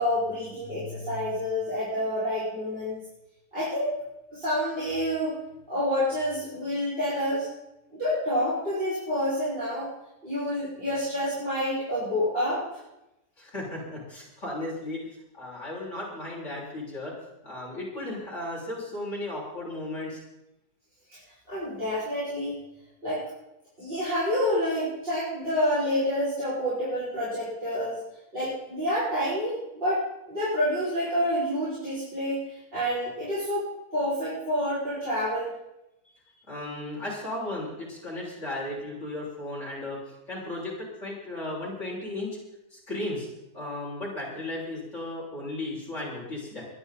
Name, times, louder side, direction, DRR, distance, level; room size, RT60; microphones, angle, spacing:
voice 1, 0.0-3.0 3.5-4.0 4.3-5.4 5.7-7.5 8.0-9.9 10.2-12.6 21.1-21.2 21.5-22.6 23.0-23.2 23.8-28.0 28.3-33.7 33.9-35.5, equal, 35° right, -11 dB, 6.9 m, -28 dB
voice 2, 13.4-15.0 15.3-17.1 17.4-20.2 36.5-40.0 40.3-40.8 41.0-42.3 42.7-43.3 43.5-46.6, left 1 dB, 45° left, -5 dB, 7.1 m, -35 dB
23.5 x 11.5 x 4.3 m, 0.91 s
omnidirectional pair, 1.7 m